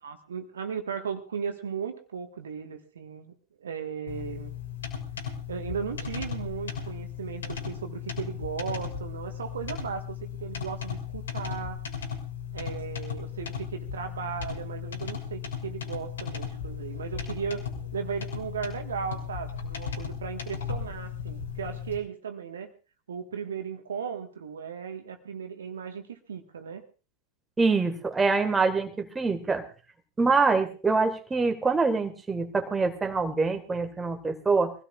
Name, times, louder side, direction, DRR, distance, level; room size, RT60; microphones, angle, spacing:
voice 1, 0.0-3.3 3.6-4.5 5.5-11.8 12.5-17.7 17.9-22.7 23.1-26.8, right 7 dB, 65° right, 6 dB, 1.6 m, -36 dB
sound 1, 4.1-22.0, left 7 dB, 70° left, 3.4 m, -36 dB
voice 2, 27.6-29.6 30.2-34.7, right 4 dB, 10° right, 5 dB, 1.7 m, -25 dB
23.5 x 16.5 x 2.5 m, 0.35 s
figure-of-eight pair, 90°, 0 cm